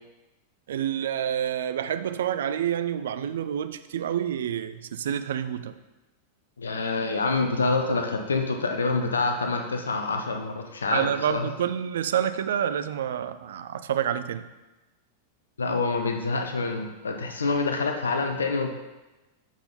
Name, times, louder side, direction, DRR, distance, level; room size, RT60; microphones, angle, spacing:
voice 1, 0.7-5.8 10.9-14.4, right 9 dB, 60° right, 12 dB, 0.4 m, -28 dB
voice 2, 6.6-11.5 15.6-18.7, left 3 dB, 70° left, 4 dB, 0.8 m, -26 dB
7.3 x 5.6 x 4.1 m, 1.1 s
figure-of-eight pair, 90°, 0 cm